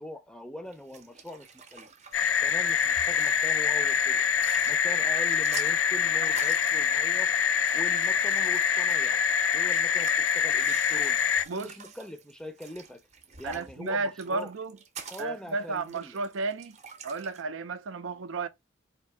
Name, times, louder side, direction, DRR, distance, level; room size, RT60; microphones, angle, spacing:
voice 1, 0.0-1.9 2.4-4.3 4.6-7.3 7.7-9.2 9.5-11.2 11.5-13.0 13.4-14.5 15.1-16.2, left 1 dB, 5° left, 0.4 m, -42 dB
sound 1, 0.7-17.4, right 6 dB, 35° right, 0.7 m, -48 dB
sound 2, 2.1-11.4, left 7 dB, 80° left, 0.4 m, -25 dB
voice 2, 13.4-14.8 15.2-16.8 17.0-18.5, right 3 dB, 90° right, 0.6 m, -33 dB
4.4 x 2.7 x 3.3 m
head